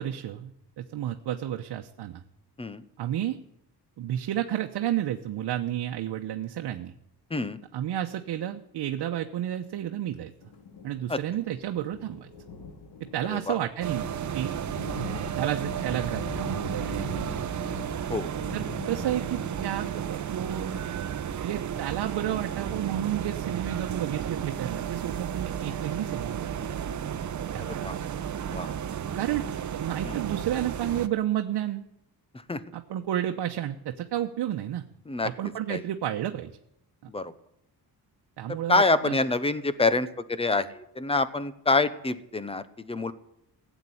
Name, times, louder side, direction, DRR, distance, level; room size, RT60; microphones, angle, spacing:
voice 1, 0.0-2.2 3.0-3.4 4.0-6.9 7.7-10.3 10.8-12.3 13.1-14.6 14.9-17.4 18.5-20.7 21.4-26.8 27.5-27.9 29.1-29.5 29.7-31.8 32.7-34.8 35.2-36.5 38.4-39.2, right 11 dB, 85° right, 4 dB, 1.0 m, -31 dB
sound 1, 10.4-19.9, left 2 dB, 80° left, 2.6 m, -42 dB
sound 2, 13.8-31.1, right 9 dB, 45° right, 0.9 m, -33 dB
voice 2, 38.7-43.1, left 3 dB, 15° left, 14 dB, 0.8 m, -26 dB
16.5 x 8.2 x 9.9 m, 0.79 s
wide cardioid pair, 160°, 40 cm